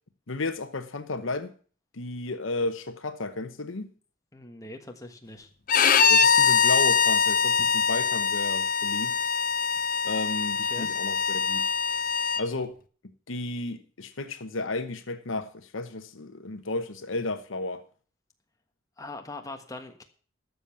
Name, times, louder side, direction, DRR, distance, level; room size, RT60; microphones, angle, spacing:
voice 1, 0.3-1.5 1.9-3.9 6.1-9.2 10.0-11.7 12.4-12.7 13.3-17.8, left 2 dB, 70° left, 1.0 m, -33 dB
voice 2, 4.3-5.5 10.7-10.9 19.0-20.0, left 2 dB, 15° left, 1.4 m, -41 dB
Bowed string instrument, 5.7-12.4, left 6 dB, 45° left, 0.7 m, -23 dB
12.5 x 7.2 x 7.1 m
head